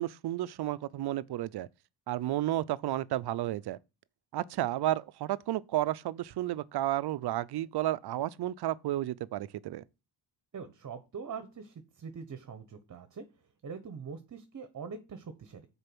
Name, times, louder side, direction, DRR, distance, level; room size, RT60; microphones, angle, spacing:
voice 1, 0.0-1.7 2.1-3.8 4.3-9.8, right 14 dB, 55° right, 0.5 m, -32 dB
voice 2, 10.5-13.2 13.6-15.7, right 5 dB, 40° right, 1.0 m, -43 dB
6.5 x 4.5 x 6.0 m
cardioid pair, 115°, 48 cm